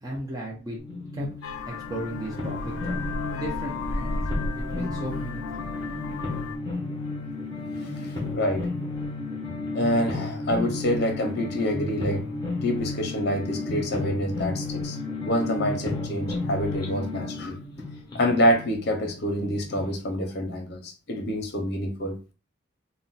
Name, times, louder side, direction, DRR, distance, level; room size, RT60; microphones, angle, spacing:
voice 1, 0.0-0.8 1.1-1.3 1.7-3.0 3.3-4.2 4.5-5.6, right 1 dB, 20° right, 0.5 m, -35 dB
sound 1, 0.8-19.9, left 3 dB, 20° left, 0.7 m, -33 dB
Vehicle horn car horn honking, 1.4-6.6, left 3 dB, 90° left, 0.4 m, -34 dB
voice 2, 7.8-8.7 9.7-12.2 12.6-15.0 15.2-17.6 18.1-22.2, equal, 50° left, 0.7 m, -27 dB
2.4 x 2.2 x 3.9 m
head